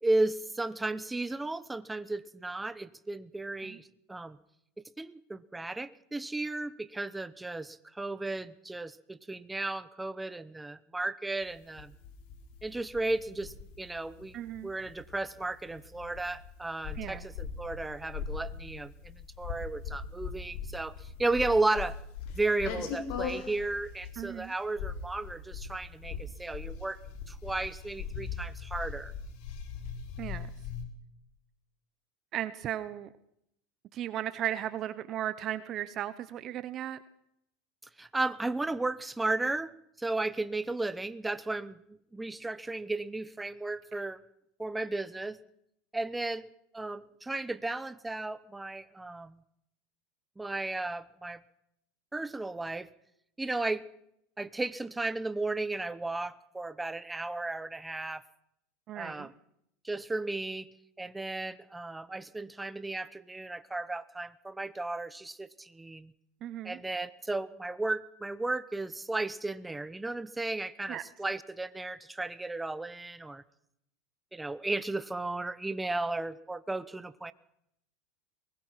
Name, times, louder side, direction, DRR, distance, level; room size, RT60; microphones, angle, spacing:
voice 1, 0.0-4.4 5.0-11.9 12.6-14.4 14.6-22.0 22.3-27.0 27.3-29.1 38.0-41.8 42.1-44.2 44.6-45.4 45.9-46.5 46.7-49.4 50.4-51.4 52.1-52.9 53.4-53.8 54.4-58.2 59.0-59.3 59.8-60.7 61.0-66.1 66.6-73.4 74.3-77.3, right 2 dB, 10° right, 16 dB, 1.0 m, -34 dB
sound 1, 11.4-30.8, left 6 dB, 65° left, 4.2 m, -40 dB
voice 2, 14.3-14.7 17.0-17.3 24.2-24.5 30.2-30.5 32.3-33.1 33.9-37.0 58.9-59.3 66.4-66.8 70.9-71.0, right 11 dB, 45° right, 14 dB, 1.0 m, -36 dB
23.0 x 20.0 x 5.9 m, 0.77 s
supercardioid pair, 110°, 0 cm